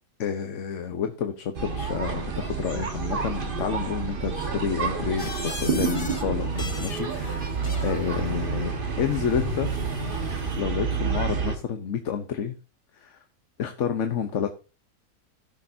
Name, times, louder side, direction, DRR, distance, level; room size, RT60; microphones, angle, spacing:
voice 1, 0.2-7.5 7.8-9.7 10.5-12.6 12.9-13.2 13.6-14.5, left 7 dB, 55° left, 6 dB, 1.1 m, -29 dB
sound 1, 1.5-11.6, right 5 dB, 35° right, 1.4 m, -29 dB
sound 2, 5.2-6.2 6.5-8.0 9.0-10.6, left 4 dB, 30° left, 0.9 m, -40 dB
17.0 x 6.5 x 2.7 m, 0.32 s
omnidirectional pair, 1.6 m